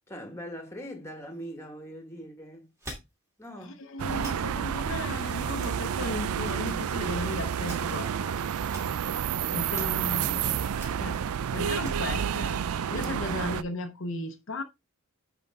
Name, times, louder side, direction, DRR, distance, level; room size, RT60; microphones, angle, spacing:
voice 1, 0.1-2.7 3.4-3.8, equal, 10° left, 1.6 m, -41 dB
sound 1, 2.8-3.1 3.4-3.7 4.1-4.3 4.8-4.9 5.5-6.2 6.5-7.2 7.5-8.0 8.6-8.9 9.4-9.5 9.7-10.2 10.7-10.9 11.6-11.9, equal, 15° right, 2.6 m, -44 dB
voice 2, 3.6-8.5 9.2-9.3 9.5-10.6 11.0-11.2 11.5-14.6, left 2 dB, 60° left, 0.8 m, -36 dB
sound 2, 4.0-13.6, right 8 dB, 85° right, 0.4 m, -30 dB
10.0 x 3.7 x 3.6 m
head